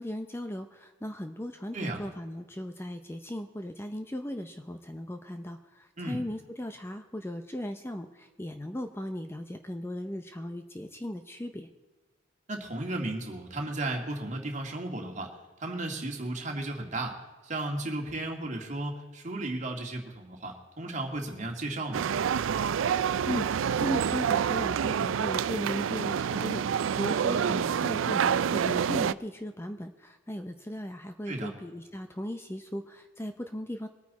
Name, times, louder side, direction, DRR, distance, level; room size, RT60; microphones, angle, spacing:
voice 1, 0.0-11.7 23.3-33.9, equal, 15° left, 7 dB, 0.6 m, -37 dB
voice 2, 12.5-15.3 15.6-17.2 17.4-22.1 31.3-31.5, right 2 dB, 40° right, 2 dB, 2.1 m, -34 dB
sound 1, 21.9-29.1, right 7 dB, 85° right, 0.4 m, -27 dB
22.5 x 9.4 x 4.2 m, 1.3 s
head